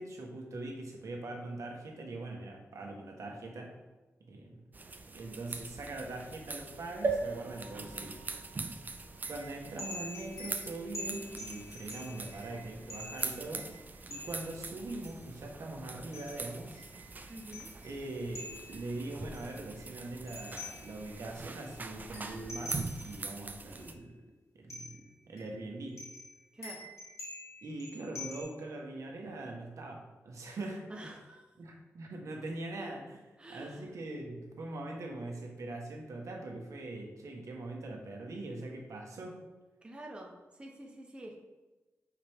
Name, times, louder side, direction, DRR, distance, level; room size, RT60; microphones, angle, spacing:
voice 1, 0.0-3.7 4.2-4.6 5.1-8.2 8.7-8.8 9.3-13.7 14.1-16.8 17.8-24.2 24.5-26.0 27.6-30.9 31.6-39.4, right 2 dB, 80° right, 1 dB, 1.4 m, -42 dB
sound 1, 4.7-23.9, right 3 dB, 35° right, 0.5 m, -44 dB
sound 2, 7.0-10.7 11.3-11.4 11.6-11.7, right 4 dB, 55° right, 1.1 m, -38 dB
sound 3, 9.2-14.5 15.0-15.1 16.1-18.8 19.3-21.2 21.6-21.7 22.0-23.2 23.7-23.8 24.7-25.1 25.4-28.4, left 1 dB, 80° left, 1.9 m, -46 dB
voice 2, 17.3-17.7 26.5-26.9 30.9-31.5 33.4-33.9 39.8-41.4, right 1 dB, 20° right, 1 dB, 0.9 m, -47 dB
8.7 x 4.9 x 3.6 m, 1.2 s
wide cardioid pair, 135°, 5 cm